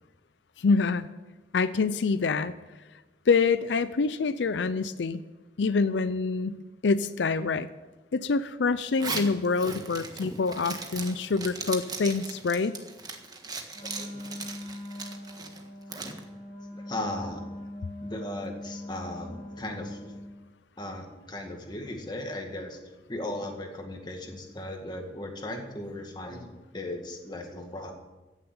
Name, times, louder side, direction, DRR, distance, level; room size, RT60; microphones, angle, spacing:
voice 1, 0.6-1.1 1.5-2.5 3.3-5.2 5.6-6.6 6.8-7.7 8.1-12.8, left 4 dB, 90° left, 14 dB, 0.5 m, -26 dB
Zipper (clothing), 8.8-16.2, right 4 dB, 20° right, 1.4 m, -38 dB
Wind instrument woodwind instrument, 13.7-20.3, left 1 dB, 50° left, 3.4 m, -42 dB
voice 2, 13.9-14.4 16.0-16.1 16.7-17.4 18.0-20.1 20.8-22.8 23.1-27.9, left 1 dB, 25° left, 3 dB, 1.9 m, -37 dB
15.0 x 7.3 x 8.8 m, 1.1 s
head